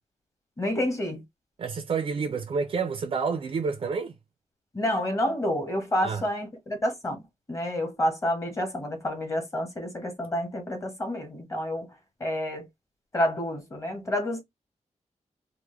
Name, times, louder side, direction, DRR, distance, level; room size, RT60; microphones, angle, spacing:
voice 1, 0.6-1.2 4.7-7.2 7.5-11.9 12.2-12.7 13.1-14.4, left 1 dB, 25° left, 1.0 m, -29 dB
voice 2, 1.6-4.2 6.0-6.2, right 5 dB, 50° right, 0.4 m, -29 dB
3.5 x 2.1 x 3.1 m
wide cardioid pair, 170°, 13 cm